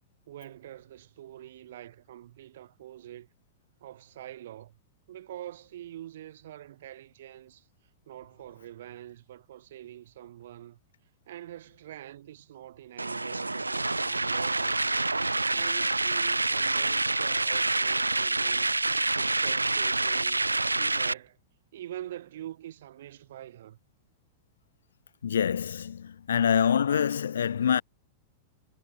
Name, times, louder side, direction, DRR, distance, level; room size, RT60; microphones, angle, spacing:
voice 1, 0.3-3.3 3.8-4.8 5.1-7.7 8.0-10.8 11.3-14.8 15.5-18.8 19.1-21.4 21.7-23.8, right 12 dB, 60° right, 1.6 m, -45 dB
sound 1, 13.0-21.1, right 2 dB, 90° right, 0.4 m, -27 dB
voice 2, 25.2-27.8, left 8 dB, 70° left, 0.6 m, -25 dB
figure-of-eight pair, 95°, 0 cm